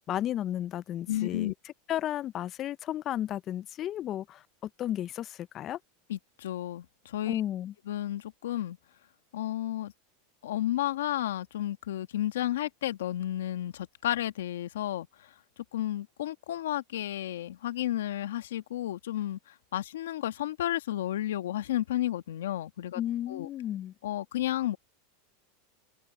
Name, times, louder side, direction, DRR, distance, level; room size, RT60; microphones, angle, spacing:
voice 1, 0.1-1.5 1.9-5.8 7.3-7.7 23.0-23.9, left 12 dB, 40° left, 0.6 m, -33 dB
voice 2, 1.1-1.5 6.1-7.4 7.9-8.8 9.3-9.9 10.4-15.1 15.7-23.0 23.3-23.5 24.0-24.8, left 13 dB, 80° left, 1.4 m, -32 dB
open air
hypercardioid pair, 105°, 0 cm